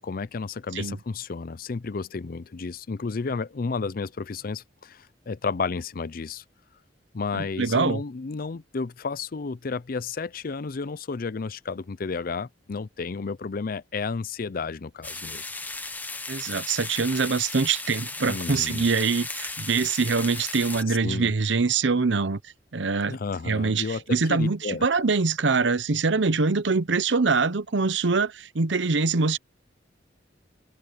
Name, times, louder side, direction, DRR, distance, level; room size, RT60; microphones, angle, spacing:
voice 1, 0.0-6.4 7.1-15.4 18.3-18.9 20.9-21.3 23.1-24.0 24.3-24.9, left 4 dB, 50° left, 0.5 m, -32 dB
voice 2, 7.3-8.0 16.3-22.4 22.7-23.2 23.5-29.4, right 4 dB, 85° right, 0.8 m, -24 dB
sound 1, 15.0-20.8, left 3 dB, 10° left, 1.0 m, -35 dB
head